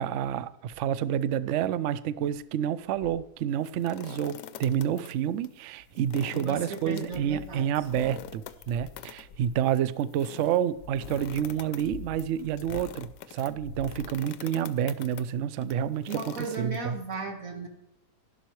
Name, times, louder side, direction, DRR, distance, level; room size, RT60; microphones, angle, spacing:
voice 1, 0.0-17.0, right 9 dB, 85° right, 0.6 m, -29 dB
sound 1, 0.7-1.0 1.6-1.7 2.2-2.4 2.9-3.3 4.7-4.8 5.6-6.3 6.8-9.7 10.4-13.1 13.5-14.4 15.3-15.4, left 4 dB, 65° left, 1.4 m, -47 dB
sound 2, 3.5-5.1 5.4-5.5 5.9-17.1, left 10 dB, 90° left, 1.2 m, -45 dB
voice 2, 6.3-7.7 16.1-17.7, right 4 dB, 55° right, 1.9 m, -36 dB
11.5 x 11.5 x 3.1 m
omnidirectional pair, 1.8 m